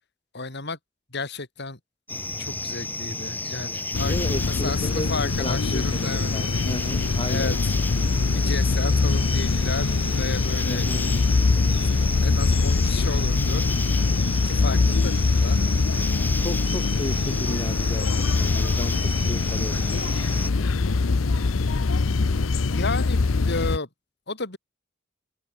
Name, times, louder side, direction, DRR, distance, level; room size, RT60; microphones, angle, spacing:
voice 1, 0.3-0.8 1.1-1.8 2.4-6.3 7.2-7.8 8.3-10.9 11.7-13.6 14.4-15.6 22.7-23.9 24.3-24.6, left 3 dB, 60° left, 4.7 m, -33 dB
sound 1, 2.1-20.5, left 2 dB, 10° left, 3.0 m, -32 dB
sound 2, 3.9-23.8, left 3 dB, 80° left, 0.7 m, -23 dB
voice 2, 4.1-7.6 10.7-11.5 16.4-20.7, left 1 dB, 25° left, 2.3 m, -34 dB
open air
head